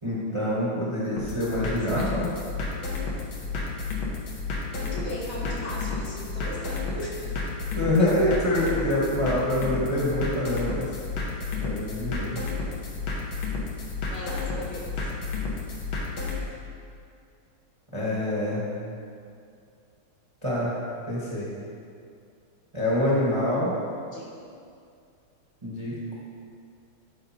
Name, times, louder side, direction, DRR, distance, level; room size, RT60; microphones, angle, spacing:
voice 1, 0.0-2.3 7.8-10.9 11.6-12.4 17.9-18.7 20.4-20.7 21.1-21.5 22.7-23.7 25.6-26.1, left 1 dB, 20° right, -6 dB, 0.9 m, -26 dB
sound 1, 1.2-16.4, left 4 dB, 75° left, 1.8 m, -31 dB
voice 2, 1.7-2.1 4.7-7.3 8.0-8.3 8.6-8.7 9.0-9.1 14.1-15.0 24.1-24.4, left 1 dB, 55° left, -6 dB, 1.9 m, -37 dB
11.5 x 5.1 x 2.8 m, 2.4 s
omnidirectional pair, 2.3 m